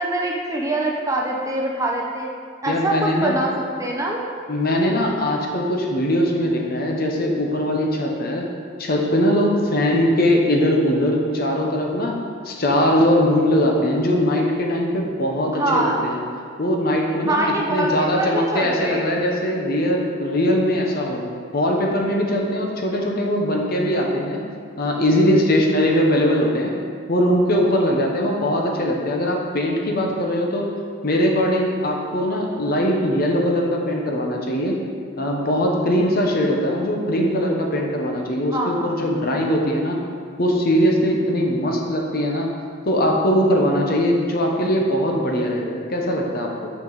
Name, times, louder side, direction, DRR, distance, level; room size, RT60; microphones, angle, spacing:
voice 1, 0.0-2.3 2.6-3.5 3.8-4.3 15.5-16.0 17.3-19.1 38.5-38.9, right 1 dB, 15° right, -1 dB, 0.7 m, -24 dB
voice 2, 2.7-3.4 4.5-8.5 8.8-12.2 12.4-16.2 16.6-17.4 17.7-21.2 21.5-24.4 24.8-26.7 27.1-30.7 31.0-34.8 35.2-40.0 40.4-42.5 42.8-46.7, equal, 50° left, 0 dB, 1.0 m, -21 dB
9.2 x 5.2 x 4.0 m, 2.1 s
head